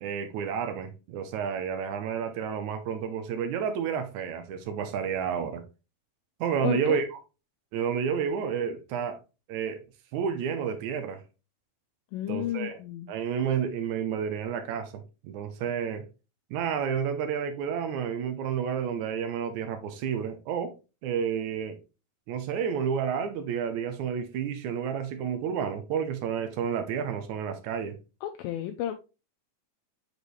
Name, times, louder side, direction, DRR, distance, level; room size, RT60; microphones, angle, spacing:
voice 1, 0.0-5.6 6.4-7.1 7.7-9.2 9.5-9.8 10.1-11.2 12.3-12.8 13.1-16.1 16.5-20.7 21.0-21.8 22.3-28.0, right 7 dB, 75° right, 1.7 m, -30 dB
voice 2, 6.6-7.0 12.1-13.1 28.2-28.9, left 12 dB, 85° left, 2.3 m, -32 dB
6.4 x 5.2 x 3.1 m
omnidirectional pair, 4.2 m